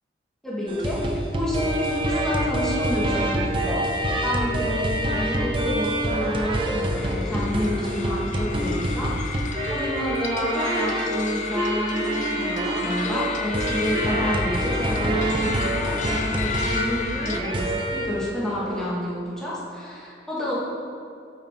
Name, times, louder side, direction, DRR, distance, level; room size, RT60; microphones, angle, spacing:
voice 1, 0.4-20.5, left 1 dB, 5° left, -7 dB, 1.4 m, -29 dB
sound 1, 0.7-18.2 18.6-18.9, right 1 dB, 30° right, 0.6 m, -26 dB
sound 2, 7.0-17.4, left 5 dB, 45° left, 0.5 m, -33 dB
8.7 x 4.1 x 4.4 m, 2.5 s
head